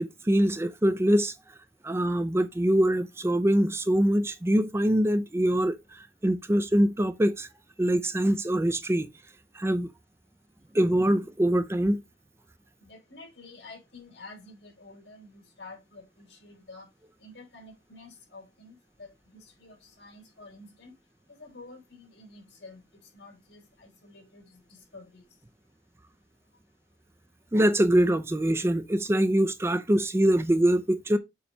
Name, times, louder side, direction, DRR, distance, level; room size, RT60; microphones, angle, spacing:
voice 1, 0.0-1.3 1.8-7.5 7.8-9.1 9.5-9.9 10.7-12.0 27.5-31.2, right 1 dB, 15° right, 0.4 m, -24 dB
voice 2, 12.8-16.9 17.2-20.9 21.4-25.2, left 3 dB, 75° left, 3.7 m, -49 dB
7.0 x 3.0 x 5.4 m
head